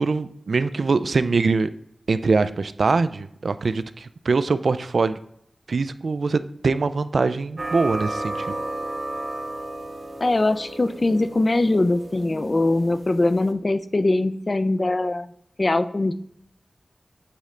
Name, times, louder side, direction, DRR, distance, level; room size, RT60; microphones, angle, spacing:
voice 1, 0.0-1.7 2.1-5.2 5.7-8.6, right 4 dB, 75° right, 13 dB, 0.3 m, -23 dB
sound 1, 7.6-13.5, right 2 dB, 45° right, 0.8 m, -33 dB
voice 2, 10.2-15.3 15.6-16.1, left 2 dB, 40° left, 12 dB, 0.4 m, -22 dB
8.3 x 3.7 x 3.2 m, 0.71 s
wide cardioid pair, 75°, 0 cm